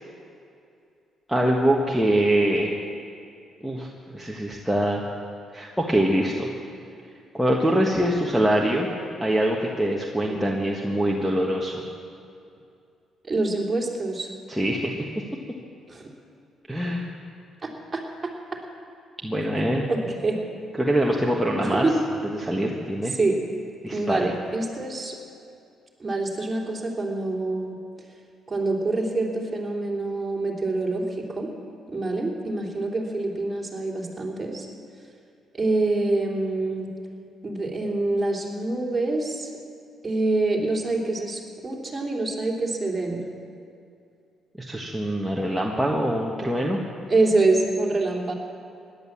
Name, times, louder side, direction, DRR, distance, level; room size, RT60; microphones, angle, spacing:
voice 1, 1.3-2.7 3.6-5.0 5.5-6.5 7.3-8.9 9.2-11.8 14.5-14.9 16.7-17.1 19.2-19.8 20.8-21.9 22.4-23.1 23.8-24.3 44.6-46.8, right 1 dB, ahead, -2 dB, 1.5 m, -24 dB
voice 2, 10.2-10.5 13.3-14.3 15.9-16.1 17.6-18.3 19.9-20.4 21.6-21.9 23.1-23.4 23.9-25.1 26.0-27.8 28.5-31.5 31.9-34.7 35.5-36.9 37.4-39.5 40.0-43.2 47.1-48.3, right 2 dB, 25° right, -1 dB, 3.3 m, -26 dB
17.5 x 11.0 x 7.4 m, 2.5 s
cardioid pair, 90°, 0 cm